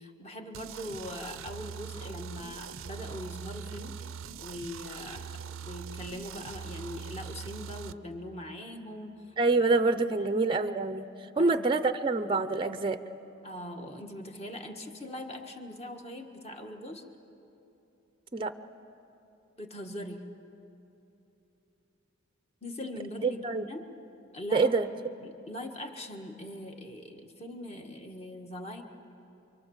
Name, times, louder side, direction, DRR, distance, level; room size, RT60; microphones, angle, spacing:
voice 1, 0.0-9.2 9.5-9.6 9.9-10.3 11.4-11.7 13.4-17.0 19.6-20.3 22.6-23.9 24.3-24.7 25.2-28.8, left 1 dB, 30° left, 3 dB, 1.7 m, -41 dB
sound 1, 0.5-7.9, right 7 dB, 70° right, 0.5 m, -42 dB
voice 2, 9.4-11.1 11.4-13.0 18.3-18.5 23.2-23.7 24.5-24.9, right 3 dB, 25° right, 11 dB, 0.6 m, -26 dB
29.0 x 24.0 x 7.3 m, 2.9 s
head